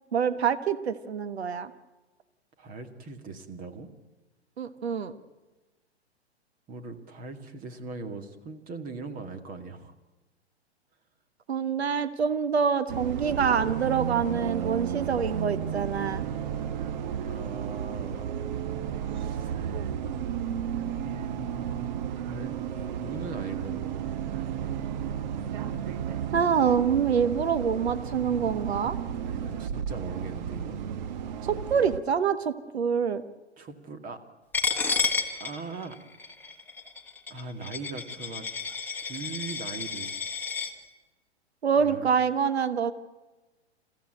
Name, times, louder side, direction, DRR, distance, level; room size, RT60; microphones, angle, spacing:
voice 1, 0.1-1.7 4.6-5.1 11.5-16.2 26.3-29.0 31.4-33.2 41.6-42.9, right 7 dB, 70° right, 11 dB, 1.4 m, -26 dB
voice 2, 2.6-3.9 6.7-9.9 17.2-18.3 19.1-19.5 20.5-22.0 22.3-24.0 29.2-30.8 33.6-34.2 35.3-36.0 37.3-38.5 39.0-40.2 41.8-42.1, right 4 dB, 25° right, 7 dB, 2.0 m, -40 dB
Bus, 12.9-32.0, right 9 dB, 45° right, 1.3 m, -33 dB
Coin (dropping), 34.5-40.7, left 5 dB, 5° left, 1.8 m, -31 dB
29.0 x 15.5 x 9.1 m, 1.2 s
figure-of-eight pair, 110°, 33 cm